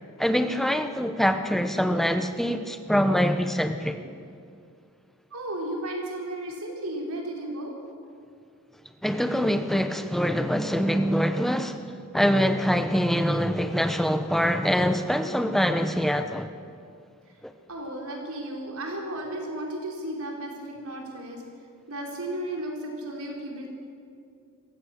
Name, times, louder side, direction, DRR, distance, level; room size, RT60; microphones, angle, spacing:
voice 1, 0.2-4.0 9.0-16.5 17.4-17.5, equal, ahead, 0.9 m, -24 dB
voice 2, 5.3-7.7 17.7-21.4 21.9-23.7, right 1 dB, 75° right, 4.4 m, -34 dB
27.0 x 15.5 x 6.5 m
head